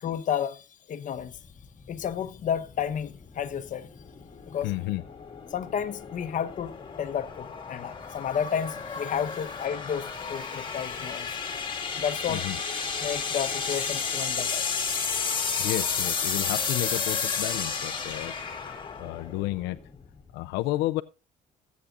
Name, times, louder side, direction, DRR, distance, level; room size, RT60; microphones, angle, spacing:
voice 1, 0.0-1.4 1.9-3.9 4.5-4.7 5.5-11.7 12.0-12.5 13.0-14.7, left 8 dB, 50° left, 1.0 m, -32 dB
sound 1, 1.3-20.3, left 5 dB, 30° left, 2.1 m, -32 dB
voice 2, 4.6-5.0 12.3-12.6 15.6-19.8 20.3-21.0, left 17 dB, 90° left, 0.5 m, -32 dB
19.0 x 8.4 x 2.5 m
cardioid pair, 110°, 17 cm